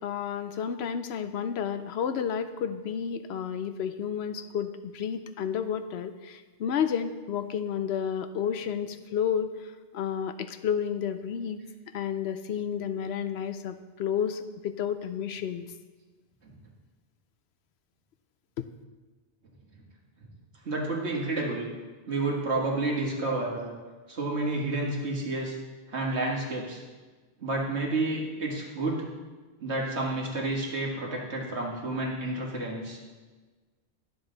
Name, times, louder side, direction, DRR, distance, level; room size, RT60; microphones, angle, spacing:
voice 1, 0.0-9.5 9.9-11.6 11.9-15.7 18.6-18.7, left 8 dB, 75° left, 10 dB, 0.8 m, -31 dB
voice 2, 20.7-21.7 22.1-23.7 24.1-25.6 25.9-26.8 27.4-29.0 29.6-33.0, right 2 dB, 75° right, -1 dB, 2.0 m, -30 dB
11.5 x 7.0 x 3.9 m, 1.4 s
omnidirectional pair, 1.1 m